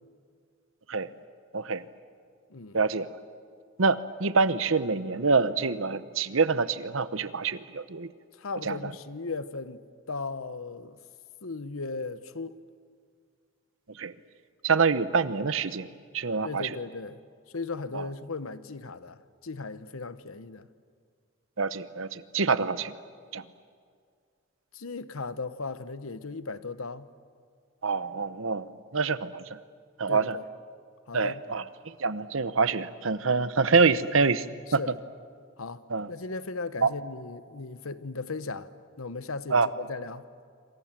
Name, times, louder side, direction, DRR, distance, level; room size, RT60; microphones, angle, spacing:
voice 1, 2.7-3.1 3.8-8.1 8.7-8.8 14.0-14.1 14.6-15.9 16.1-16.7 17.9-18.0 21.6-22.9 23.3-23.4 27.8-28.7 28.9-29.4 30.0-30.4 31.1-31.6 32.0-34.5 34.7-34.8 35.9-36.1 36.8-36.9 39.5-39.7, right 4 dB, 70° right, 1.0 m, -26 dB
voice 2, 8.4-9.8 10.1-11.0 11.4-12.6 16.4-17.2 17.5-20.7 22.6-22.7 24.7-27.1 30.1-30.4 31.1-31.4 34.8-34.9 35.6-38.7 39.0-40.2, left 3 dB, 85° left, 1.0 m, -37 dB
27.0 x 27.0 x 7.5 m
head